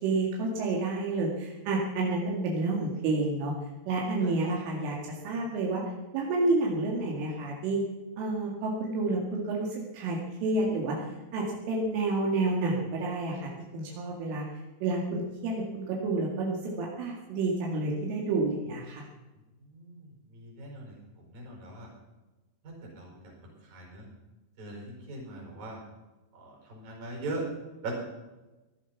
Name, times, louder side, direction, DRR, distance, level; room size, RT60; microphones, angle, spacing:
voice 1, 0.0-3.5 3.9-5.8 6.1-7.8 8.2-11.0 11.3-14.4 14.8-19.1, right 2 dB, 80° right, -2 dB, 4.5 m, -29 dB
voice 2, 4.2-4.6 19.6-21.9 22.6-24.1 24.6-25.8 26.3-27.4 27.8-27.9, right 2 dB, 50° right, -1 dB, 6.5 m, -41 dB
17.5 x 11.5 x 5.9 m, 1.1 s
omnidirectional pair, 5.6 m